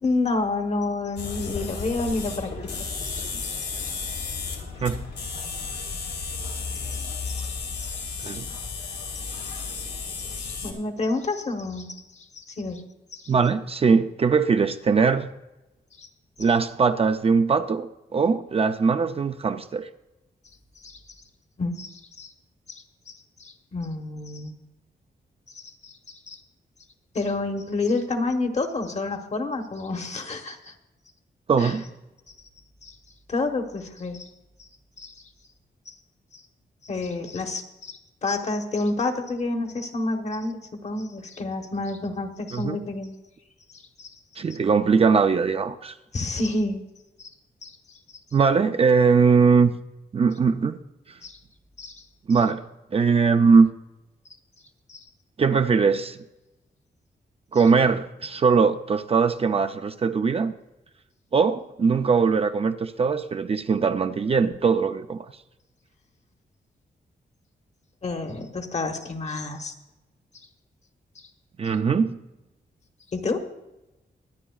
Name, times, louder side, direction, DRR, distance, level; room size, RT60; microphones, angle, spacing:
voice 1, 0.0-3.9 6.9-8.4 9.7-9.9 10.3-13.3 16.0-16.1 20.8-21.0 21.6-22.3 22.7-24.5 25.5-26.4 27.1-30.7 31.6-31.7 32.8-33.0 33.3-34.3 34.6-34.7 35.0-35.1 35.9-36.0 36.3-36.4 36.8-43.1 43.7-44.2 46.1-46.9 47.2-47.3 47.6-47.8 51.2-51.4 51.8-52.0 54.9-55.0 68.0-69.7 73.1-73.5, left 3 dB, 40° left, 5 dB, 1.1 m, -30 dB
sound 1, 1.2-10.7, left 4 dB, 85° left, 2.3 m, -33 dB
voice 2, 13.3-15.3 16.4-19.9 31.5-31.9 42.5-42.8 44.4-45.9 48.3-49.7 50.1-50.8 52.3-52.6 52.9-53.7 55.4-56.2 57.5-60.5 61.3-65.3 71.6-72.2, right 5 dB, 35° right, 8 dB, 0.4 m, -21 dB
23.0 x 9.8 x 2.3 m, 0.99 s
wide cardioid pair, 150°, 17 cm